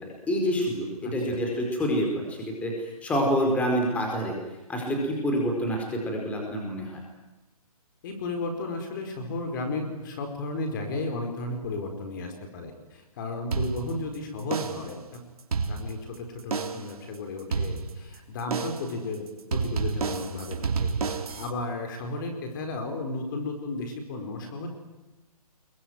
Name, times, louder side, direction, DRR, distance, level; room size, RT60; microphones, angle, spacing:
voice 1, 0.0-4.4 4.7-7.0, equal, 5° left, 1 dB, 4.8 m, -27 dB
voice 2, 1.0-1.4 8.0-15.2 15.7-19.2 19.5-24.7, left 2 dB, 35° left, 5 dB, 4.8 m, -34 dB
sound 1, 13.5-14.1 14.5-15.0 15.4-16.1 16.5-17.0 17.5-18.1 18.5-19.0 19.5-21.5, right 5 dB, 70° right, 3.7 m, -30 dB
24.5 x 23.0 x 9.6 m, 1.0 s
hypercardioid pair, 165°, 19 cm